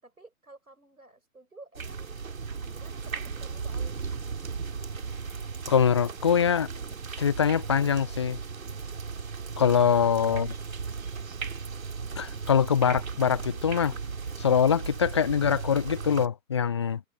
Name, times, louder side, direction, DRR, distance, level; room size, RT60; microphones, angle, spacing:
voice 1, 0.0-2.1 2.6-4.1 10.3-10.5, right 2 dB, 85° right, 6.3 m, -51 dB
sound 1, 1.7-16.3, right 5 dB, 70° right, 3.6 m, -36 dB
voice 2, 5.7-6.7 7.2-8.4 9.6-10.5 12.2-13.9 14.4-17.0, left 7 dB, 20° left, 0.4 m, -23 dB
figure-of-eight pair, 120°, 43 cm